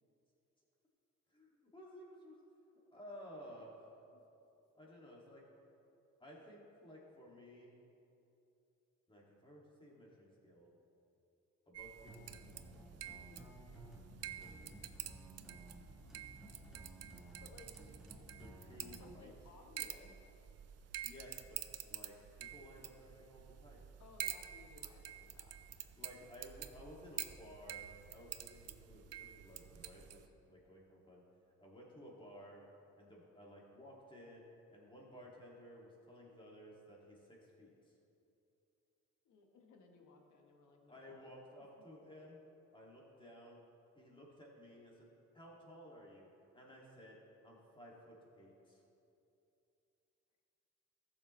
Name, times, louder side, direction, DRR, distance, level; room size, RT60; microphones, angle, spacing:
voice 1, 1.3-2.4 2.9-3.9 4.7-5.4 6.2-7.8 9.1-10.7 11.7-12.4 14.4-14.7 18.4-19.3 21.0-23.8 26.0-31.2 31.6-32.6 32.9-34.4 34.7-37.9 40.9-42.4 42.7-43.6 44.0-45.1 45.3-48.8, equal, 15° left, -3 dB, 2.2 m, -56 dB
sound 1, 11.7-30.3, right 10 dB, 55° right, 0.5 m, -49 dB
sound 2, 12.0-19.2, right 1 dB, ahead, 1.5 m, -56 dB
voice 2, 12.7-13.9 17.4-17.7 18.7-20.2 24.0-26.0 39.2-41.3, left 3 dB, 80° left, 3 dB, 1.2 m, -62 dB
14.0 x 7.1 x 3.2 m, 2.8 s
cardioid pair, 90°, 30 cm